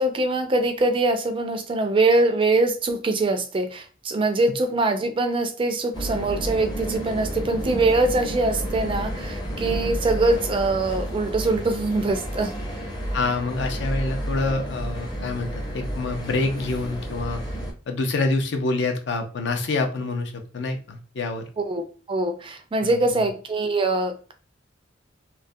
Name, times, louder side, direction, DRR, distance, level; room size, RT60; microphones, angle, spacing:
voice 1, 0.0-12.5 21.6-24.3, right 2 dB, 30° right, 7 dB, 0.3 m, -23 dB
Interior Estação de Metro Roma-Areeiro, 5.9-17.7, equal, 25° left, 0.6 m, -31 dB
voice 2, 13.1-17.4 17.9-21.5 22.8-23.3, left 3 dB, 65° left, 5 dB, 0.5 m, -27 dB
2.3 x 2.1 x 2.6 m, 0.37 s
head